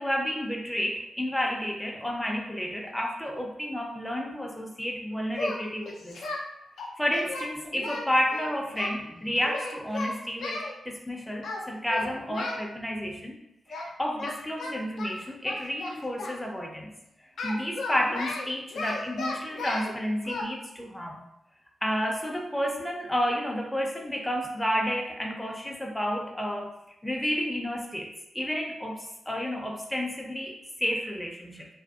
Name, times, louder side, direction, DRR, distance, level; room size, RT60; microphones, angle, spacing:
voice 1, 0.0-6.2 7.0-13.4 13.7-16.9 17.4-21.2 21.8-26.8 27.0-31.7, equal, 10° left, 0 dB, 0.4 m, -31 dB
Singing, 5.3-6.4 6.8-8.9 9.4-10.7 11.4-11.6 11.9-12.6 13.7-13.9 14.2-16.4 17.4-19.9 20.2-20.4, left 2 dB, 80° left, 0.4 m, -35 dB
2.5 x 2.2 x 2.3 m, 0.83 s
supercardioid pair, 40°, 0 cm